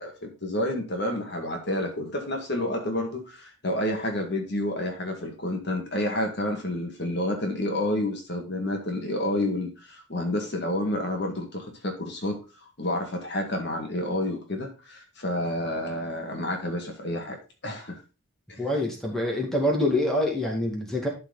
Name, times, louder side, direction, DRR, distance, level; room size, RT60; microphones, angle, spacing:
voice 1, 0.0-12.4 12.8-18.0 18.5-18.6, left 1 dB, 55° left, 3 dB, 1.9 m, -29 dB
voice 2, 18.6-21.1, left 1 dB, ahead, -1 dB, 2.2 m, -25 dB
12.0 x 4.6 x 4.0 m, 0.31 s
head